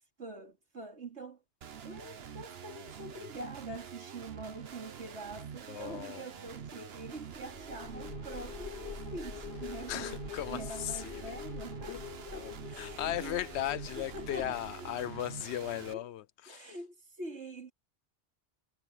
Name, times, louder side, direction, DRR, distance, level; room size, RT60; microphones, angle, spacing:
voice 1, 0.2-1.4 1.8-12.0 12.3-13.4 14.0-15.1 15.9-16.1 16.5-17.7, right 2 dB, 85° right, 3.1 m, -45 dB
sound 1, 1.6-15.9, right 7 dB, 65° right, 1.2 m, -46 dB
voice 2, 5.7-6.3 9.9-11.3 11.9-12.0 12.3-16.7, left 12 dB, 80° left, 0.9 m, -37 dB
sound 2, 7.3-15.1, left 6 dB, 55° left, 2.4 m, -45 dB
omnidirectional pair, 1.1 m